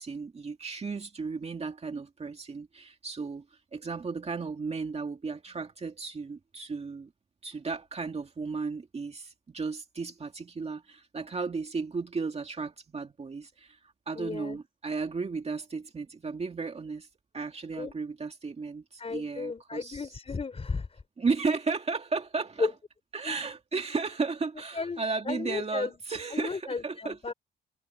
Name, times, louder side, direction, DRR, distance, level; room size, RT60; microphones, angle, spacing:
voice 1, 0.0-7.1 7.4-17.1 17.3-20.1 21.2-22.7 23.1-27.2, right 4 dB, 30° right, 2.3 m, -34 dB
voice 2, 14.2-14.6 17.8-17.9 19.0-21.0 22.6-22.7 23.2-23.4 24.7-25.9 26.3-27.3, left 4 dB, 30° left, 3.7 m, -34 dB
cardioid pair, 90°, 20 cm